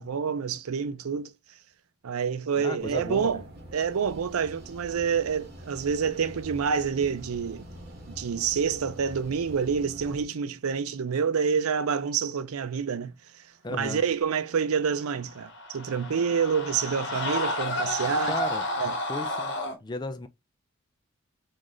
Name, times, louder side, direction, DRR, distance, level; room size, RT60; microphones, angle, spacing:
voice 1, 0.0-1.3 2.0-3.4 3.7-7.7 8.1-13.1 13.7-18.4 18.8-18.9, right 6 dB, 90° right, 0.5 m, -27 dB
voice 2, 2.6-3.4 13.6-14.0 18.2-18.7 19.1-19.5 19.8-20.3, left 2 dB, 20° left, 0.3 m, -34 dB
sound 1, 2.8-10.2, equal, 45° right, 1.2 m, -45 dB
sound 2, 15.3-19.8, left 1 dB, 55° left, 1.0 m, -31 dB
3.9 x 2.5 x 3.1 m
head